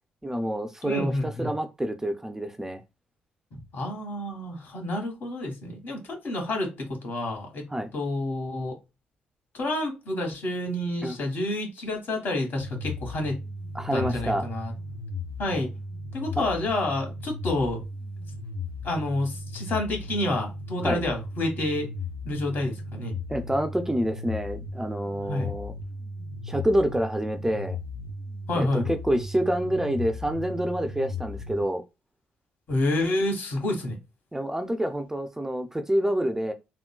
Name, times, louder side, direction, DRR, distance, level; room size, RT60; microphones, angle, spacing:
voice 1, 0.2-2.8 7.7-7.9 11.0-11.2 13.7-14.4 16.4-16.5 20.8-21.0 23.3-25.7 26.4-27.8 28.5-31.8 34.3-36.5, right 1 dB, 10° right, 0.4 m, -27 dB
voice 2, 0.8-1.5 3.7-7.6 7.9-8.8 9.5-13.4 13.9-14.7 15.4-15.7 16.1-17.8 18.8-21.9 22.2-23.1 25.3-25.5 28.5-28.9 32.7-34.0, left 1 dB, 55° left, 1.5 m, -29 dB
sound 1, 12.6-31.6, left 2 dB, 90° left, 0.4 m, -36 dB
3.6 x 2.2 x 2.2 m
supercardioid pair, 60°, 4 cm